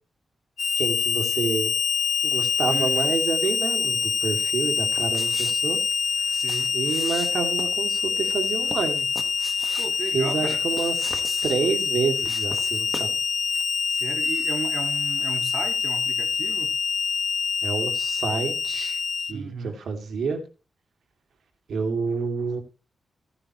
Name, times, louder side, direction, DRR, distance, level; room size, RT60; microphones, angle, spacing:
Harmonica, 0.6-19.3, left 6 dB, 60° left, 1.0 m, -25 dB
voice 1, 0.8-1.7 2.2-5.8 6.2-6.4 6.7-9.1 10.1-13.2 17.6-19.0 19.3-20.4 21.7-22.6, right 5 dB, 80° right, 2.8 m, -28 dB
voice 2, 2.7-3.1 6.3-6.7 9.8-10.6 13.9-16.7 19.3-19.8, right 5 dB, 60° right, 2.1 m, -35 dB
sound 1, 5.0-13.3 13.5-13.6, equal, ahead, 1.6 m, -41 dB
17.0 x 9.9 x 3.2 m
wide cardioid pair, 165°, 0 cm